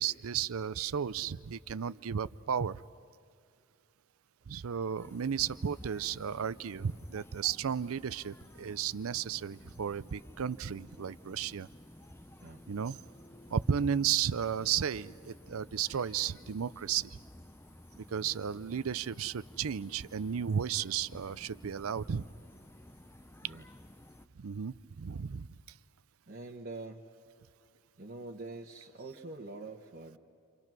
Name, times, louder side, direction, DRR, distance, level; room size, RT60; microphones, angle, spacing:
voice 1, 0.0-2.8 4.5-11.7 12.7-13.0 13.5-17.2 18.0-22.3 24.4-25.5, right 8 dB, 85° right, 17 dB, 0.5 m, -34 dB
sound 1, 5.0-24.3, left 1 dB, 10° left, 0.6 m, -54 dB
voice 2, 26.3-27.1 28.0-30.2, right 2 dB, 45° right, -1 dB, 1.3 m, -45 dB
29.5 x 27.0 x 6.1 m, 2.4 s
head